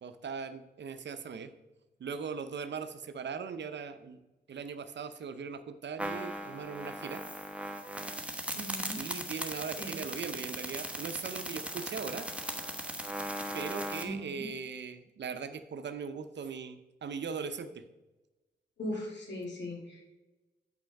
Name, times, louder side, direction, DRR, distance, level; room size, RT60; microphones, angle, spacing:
voice 1, 0.0-1.5 2.0-4.2 4.5-7.2 9.0-12.3 13.5-17.8, right 6 dB, 75° right, 11 dB, 0.7 m, -39 dB
sound 1, 6.0-14.0, right 1 dB, 5° right, 1.1 m, -38 dB
voice 2, 8.5-9.0 9.8-10.0 14.0-14.5 18.8-20.1, left 1 dB, 80° left, -2 dB, 2.7 m, -39 dB
7.9 x 5.7 x 5.2 m, 1.1 s
cardioid pair, 55°, 18 cm